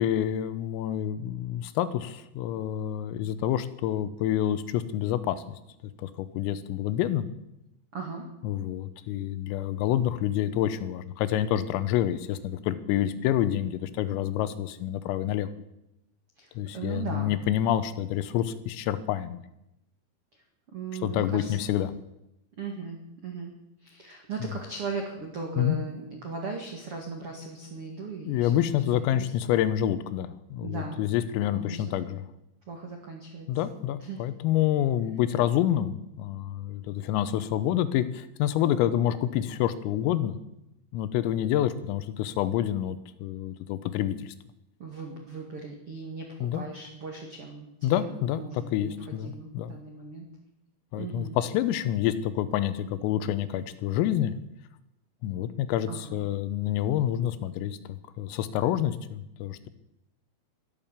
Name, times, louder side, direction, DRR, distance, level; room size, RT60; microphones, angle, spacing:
voice 1, 0.0-5.4 6.0-7.3 8.4-15.5 16.6-19.4 21.0-21.9 24.4-24.6 25.6-25.8 28.3-32.3 33.5-40.4 40.9-44.4 46.4-46.6 47.8-49.7 50.9-54.3 55.2-59.7, left 11 dB, 85° left, 13 dB, 3.5 m, -28 dB
voice 2, 7.9-8.3 16.4-17.3 20.7-21.6 22.6-23.5 23.8-29.3 30.6-31.0 31.5-31.9 32.7-33.5 34.0-34.2 44.8-50.3 51.0-51.3 55.9-56.2, right 4 dB, 70° right, 1 dB, 1.3 m, -38 dB
13.0 x 12.0 x 7.3 m, 0.87 s
omnidirectional pair, 5.9 m